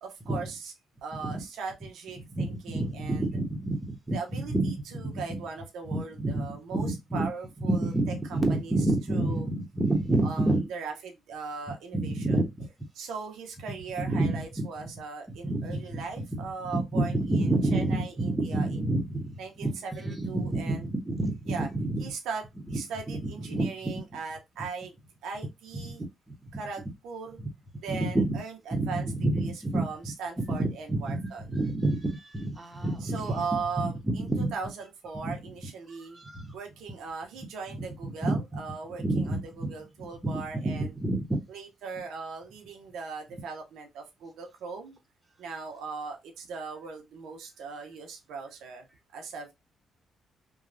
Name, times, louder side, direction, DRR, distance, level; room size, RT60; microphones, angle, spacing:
voice 1, 0.0-0.7 1.0-3.3 4.1-7.9 8.3-8.4 8.6-8.7 9.1-9.5 10.2-12.4 12.9-19.0 19.4-20.9 21.5-21.7 22.0-22.4 22.7-25.0 25.2-26.0 26.5-27.4 27.8-29.0 29.3-31.4 33.0-36.2 36.5-40.9 41.5-45.0 45.4-48.9 49.1-49.5, right 5 dB, 80° right, 0.7 m, -39 dB
voice 2, 2.3-4.7 5.0-5.4 5.9-7.3 7.7-10.7 11.9-12.7 14.0-14.7 15.3-16.0 16.3-16.5 16.7-22.1 22.7-22.8 23.1-23.9 25.7-25.9 26.3-26.5 27.9-28.4 28.7-29.9 30.4-34.5 35.2-35.4 35.6-36.6 38.2-38.4 39.0-39.7 40.2-41.4, right 2 dB, 20° right, 0.9 m, -29 dB
3.1 x 2.3 x 2.5 m
cardioid pair, 90°, 0 cm